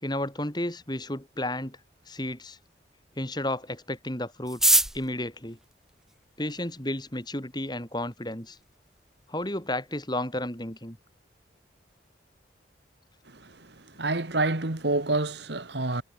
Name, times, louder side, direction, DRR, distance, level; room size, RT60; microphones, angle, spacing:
voice 1, 0.0-1.8 2.1-2.6 3.2-5.6 6.4-8.6 9.3-11.0, left 1 dB, 20° left, 5.1 m, -32 dB
sound 1, 4.4-6.7 7.5-7.6 7.8-7.9 8.2-8.6 9.0-9.1 9.2-9.7 10.0-10.2 10.5-10.8, right 1 dB, ahead, 0.5 m, -26 dB
voice 2, 13.3-16.0, right 2 dB, 65° right, 1.8 m, -28 dB
head